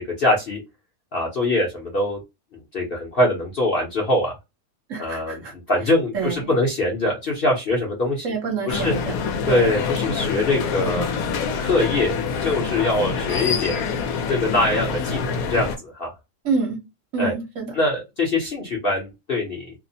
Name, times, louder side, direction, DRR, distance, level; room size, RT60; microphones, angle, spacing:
voice 1, 0.2-0.6 1.1-2.2 2.7-4.3 5.0-5.4 5.7-8.2 8.7-8.9 9.5-11.0 11.4-13.8 14.3-16.1 17.2-17.3 17.8-19.7, left 2 dB, 50° left, -1 dB, 0.8 m, -23 dB
voice 2, 4.9-5.5 6.1-6.5 8.2-9.1 9.5-9.7 16.4-16.8 17.1-17.7, right 4 dB, 60° right, 1 dB, 1.2 m, -27 dB
sound 1, 8.7-15.8, left 5 dB, 70° left, 1.0 m, -26 dB
2.8 x 2.0 x 2.6 m, 0.23 s
omnidirectional pair, 1.6 m